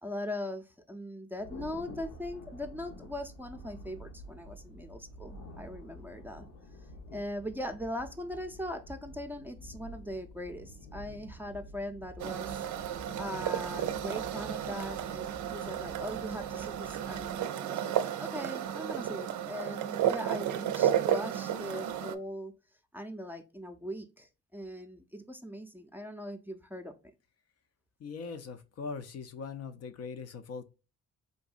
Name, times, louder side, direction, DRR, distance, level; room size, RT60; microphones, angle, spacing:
voice 1, 0.0-6.5 7.1-17.9 18.2-22.5 22.9-26.9, left 1 dB, 5° right, 0.5 m, -40 dB
Thunder, 1.4-17.4, left 1 dB, 80° left, 1.0 m, -49 dB
sound 1, 12.2-22.1, right 10 dB, 65° right, 0.5 m, -33 dB
voice 2, 28.0-30.8, left 5 dB, 50° left, 0.6 m, -41 dB
3.8 x 2.6 x 2.4 m
supercardioid pair, 65°, 32 cm